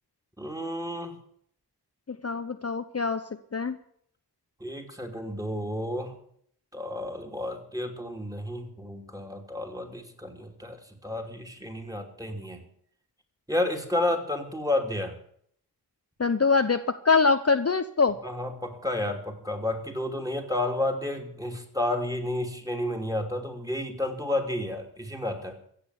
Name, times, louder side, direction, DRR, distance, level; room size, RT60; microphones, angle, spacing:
voice 1, 0.4-1.2 4.6-6.2 6.7-12.6 13.5-15.2 18.2-25.6, left 1 dB, 10° right, 5 dB, 3.1 m, -31 dB
voice 2, 2.1-3.2 3.5-3.8 16.2-18.2, left 4 dB, 35° left, 9 dB, 0.8 m, -24 dB
15.5 x 7.7 x 9.8 m, 0.65 s
wide cardioid pair, 60°, 40 cm